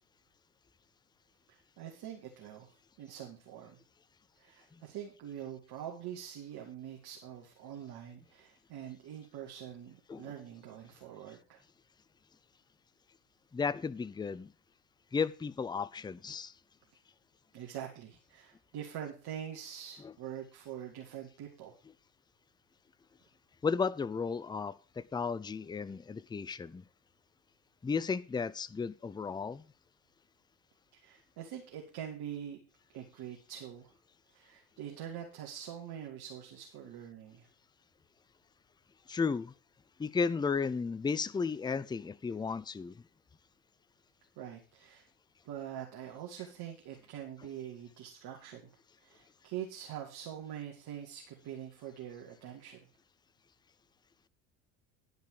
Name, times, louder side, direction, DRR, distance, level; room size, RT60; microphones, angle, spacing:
voice 1, 1.5-2.7 3.0-3.8 4.4-11.6 17.5-21.7 31.0-32.6 32.9-33.9 34.3-37.5 44.4-45.1 45.4-48.6 49.0-52.9, right 10 dB, 55° right, 2.2 m, -44 dB
voice 2, 13.5-14.5 15.1-16.5 20.0-20.1 23.6-26.8 27.8-29.7 39.1-39.5 40.0-43.0, left 5 dB, 10° left, 0.5 m, -34 dB
11.5 x 5.3 x 6.6 m
hypercardioid pair, 60°, 45 cm